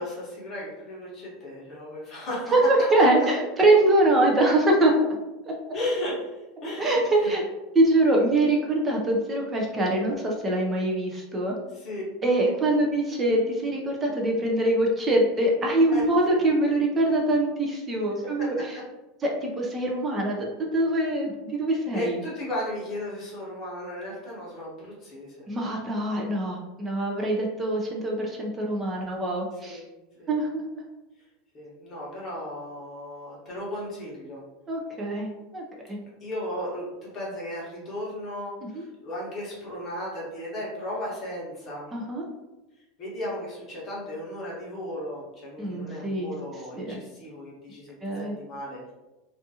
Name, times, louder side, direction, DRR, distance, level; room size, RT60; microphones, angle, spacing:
voice 1, 0.0-2.5 5.7-7.4 11.7-12.0 15.9-16.1 16.3-16.4 18.4-18.8 21.7-25.5 29.6-29.8 30.2-30.3 31.5-34.4 36.2-41.9 43.0-48.9, left 1 dB, 25° left, -6 dB, 0.8 m, -35 dB
voice 2, 2.5-5.1 5.5-5.6 6.8-7.4 7.7-11.6 12.2-18.5 19.2-22.2 25.5-29.8 30.3-30.8 34.7-36.0 38.7-38.8 41.9-42.3 45.6-46.3 46.7-47.0 48.0-48.3, right 1 dB, 15° right, -1 dB, 0.4 m, -24 dB
2.5 x 2.4 x 2.7 m, 1.0 s
supercardioid pair, 170°, 0 cm